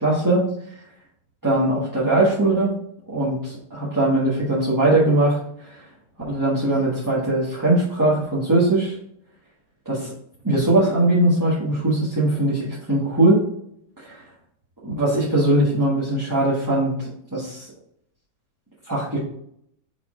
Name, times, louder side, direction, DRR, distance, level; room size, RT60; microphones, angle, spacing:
voice 1, 0.0-0.5 1.4-2.7 3.1-5.8 6.2-8.9 9.9-10.1 10.4-13.4 14.0-14.2 14.8-16.9 17.3-17.7 18.9-19.2, right 1 dB, 10° right, -9 dB, 1.3 m, -20 dB
5.8 x 4.4 x 3.7 m, 0.70 s
omnidirectional pair, 2.0 m